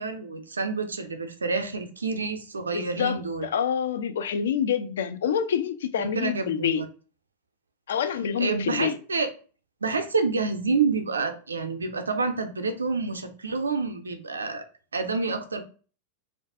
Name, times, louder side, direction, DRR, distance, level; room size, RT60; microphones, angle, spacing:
voice 1, 0.0-3.5 6.0-6.8 8.4-9.3 9.8-14.6 14.9-15.6, right 4 dB, 75° right, 0.5 m, -28 dB
voice 2, 2.7-6.8 7.9-9.0, left 8 dB, 60° left, 0.4 m, -27 dB
2.5 x 2.2 x 3.5 m
figure-of-eight pair, 90°, 0 cm